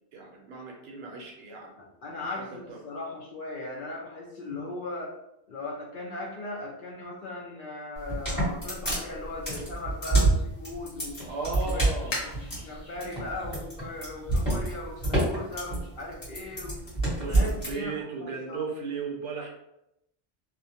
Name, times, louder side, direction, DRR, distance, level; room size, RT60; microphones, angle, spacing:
voice 1, 0.1-1.7 2.3-2.8 4.5-4.6 11.3-12.4 17.2-19.5, right 4 dB, 70° right, 0 dB, 0.8 m, -36 dB
voice 2, 1.8-5.2 5.5-11.2 11.6-11.9 12.2-12.3 12.6-16.8 17.3-18.7, left 2 dB, 60° left, -2 dB, 0.6 m, -38 dB
sound 1, 8.0-17.7, right 2 dB, 25° left, 1.3 m, -27 dB
sound 2, 10.2-15.4, left 2 dB, 85° left, 1.1 m, -43 dB
2.5 x 2.1 x 2.6 m, 0.84 s
omnidirectional pair, 1.1 m